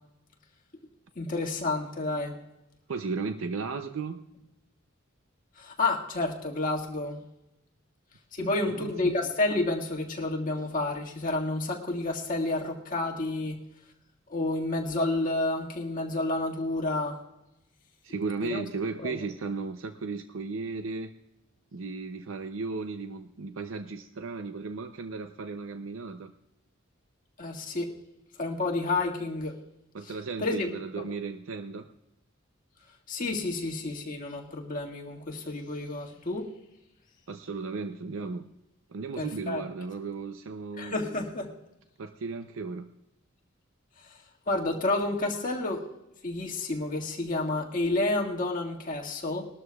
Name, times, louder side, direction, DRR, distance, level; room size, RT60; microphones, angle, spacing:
voice 1, 1.2-2.4 5.6-7.2 8.3-13.6 14.3-17.2 18.4-18.6 19.0-19.2 27.4-27.9 28.4-29.6 30.4-30.7 31.0-31.1 33.1-36.5 39.2-39.6 40.8-41.5 44.5-45.9 46.2-49.5, left 2 dB, 45° left, -1 dB, 1.8 m, -30 dB
voice 2, 2.9-4.3 8.7-9.1 18.0-21.1 21.7-26.3 29.9-31.9 37.3-38.5 38.9-41.0 42.0-42.9, right 4 dB, 80° right, 8 dB, 0.6 m, -35 dB
20.5 x 12.5 x 2.3 m, 0.91 s
head